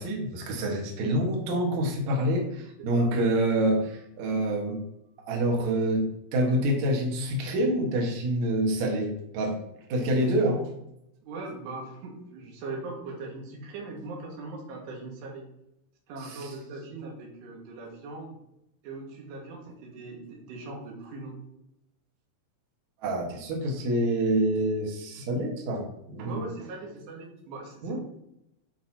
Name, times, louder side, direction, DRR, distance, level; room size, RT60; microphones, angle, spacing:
voice 1, 0.0-4.8 5.3-9.6 9.9-10.7 16.2-16.5 23.0-26.4 27.8-28.0, right 1 dB, 90° right, 0 dB, 1.6 m, -27 dB
voice 2, 11.2-15.4 16.1-18.4 18.8-21.4 26.2-28.0, right 3 dB, 65° right, -1 dB, 3.5 m, -40 dB
12.0 x 4.6 x 2.9 m, 0.80 s
omnidirectional pair, 5.8 m